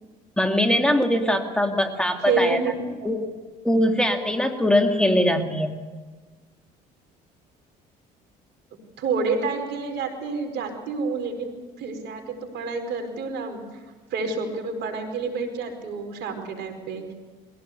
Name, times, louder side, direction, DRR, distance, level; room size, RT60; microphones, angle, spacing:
voice 1, 0.4-2.6 3.0-3.2 3.6-5.8, left 1 dB, 5° left, 4 dB, 2.5 m, -21 dB
voice 2, 2.2-2.7 9.0-13.6 14.1-17.0, right 4 dB, 70° right, 5 dB, 4.8 m, -28 dB
22.5 x 16.5 x 8.1 m, 1.3 s
supercardioid pair, 80°, 18 cm